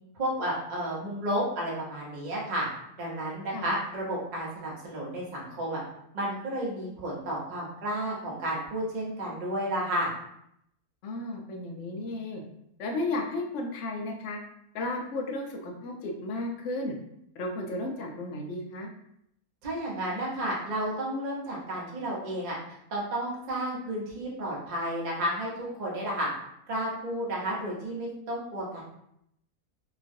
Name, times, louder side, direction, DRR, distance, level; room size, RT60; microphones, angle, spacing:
voice 1, 0.1-2.7 3.0-5.8 6.1-10.1 19.6-22.5 22.9-25.5 25.8-26.3 26.7-28.8, right 1 dB, 40° right, -4 dB, 0.7 m, -32 dB
voice 2, 11.0-12.4 12.8-14.4 14.7-16.9 17.3-18.9, left 2 dB, 65° left, 1 dB, 0.8 m, -34 dB
3.0 x 2.4 x 2.6 m, 0.76 s
omnidirectional pair, 1.6 m